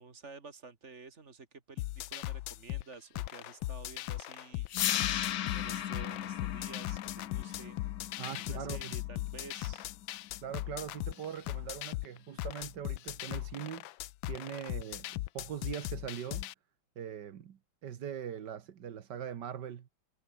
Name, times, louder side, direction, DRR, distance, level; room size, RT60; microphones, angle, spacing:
voice 1, 0.0-7.8 8.3-9.9, right 4 dB, 35° right, 2.2 m, -51 dB
sound 1, 1.8-16.5, left 16 dB, 80° left, 1.4 m, -39 dB
sound 2, 4.7-10.7, left 11 dB, 60° left, 1.1 m, -37 dB
voice 2, 8.2-8.9 10.4-13.9 14.3-16.5 17.0-19.9, right 9 dB, 60° right, 1.7 m, -41 dB
omnidirectional pair, 2.2 m